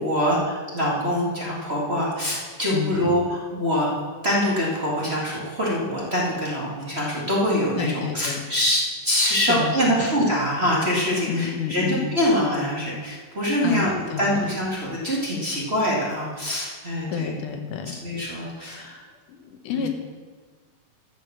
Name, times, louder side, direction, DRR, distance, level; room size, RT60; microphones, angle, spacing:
voice 1, 0.0-3.9 4.2-17.3 17.9-19.0 19.7-19.9, equal, 20° right, -5 dB, 2.0 m, -24 dB
voice 2, 2.7-3.1 7.8-8.4 9.4-9.8 11.2-12.1 13.6-14.5 17.1-18.0 19.3-19.9, left 7 dB, 75° left, 5 dB, 2.5 m, -29 dB
13.5 x 6.2 x 7.2 m, 1.5 s
omnidirectional pair, 3.8 m